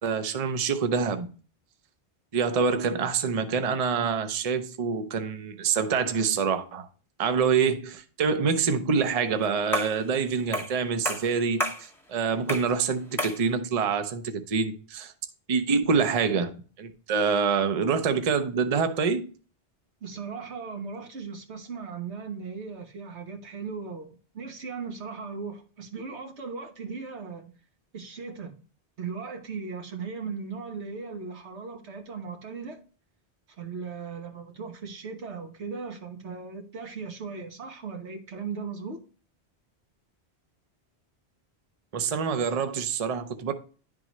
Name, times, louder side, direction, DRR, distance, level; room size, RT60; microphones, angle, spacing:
voice 1, 0.0-1.3 2.3-6.9 7.2-15.1 15.5-19.3 41.9-43.5, right 5 dB, 40° right, 0.6 m, -26 dB
sound 1, 9.7-10.0 10.5-10.8 11.1-11.9 12.5-12.7 13.2-13.4, equal, ahead, 0.9 m, -30 dB
voice 2, 20.0-27.5 27.9-28.5 29.0-32.8 33.6-39.0, right 5 dB, 90° right, 1.5 m, -37 dB
10.5 x 3.8 x 3.0 m
omnidirectional pair, 1.1 m